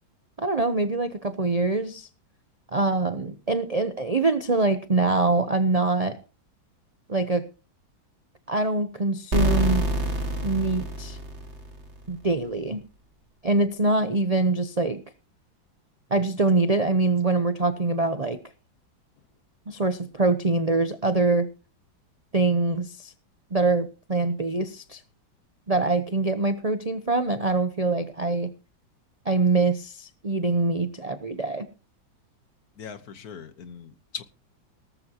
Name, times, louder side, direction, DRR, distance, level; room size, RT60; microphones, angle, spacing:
voice 1, 0.4-2.1 2.7-6.2 7.1-7.5 8.5-9.9 10.4-11.2 12.1-12.8 13.4-15.0 16.1-18.4 19.7-21.5 22.3-23.1 23.5-25.0 25.7-28.5 29.2-31.7, right 3 dB, 65° right, 10 dB, 0.3 m, -24 dB
sound 1, 9.3-12.0, right 1 dB, 35° right, 2.2 m, -26 dB
voice 2, 32.8-34.2, left 7 dB, 55° left, 12 dB, 1.4 m, -40 dB
18.0 x 14.0 x 2.9 m, 0.33 s
omnidirectional pair, 2.1 m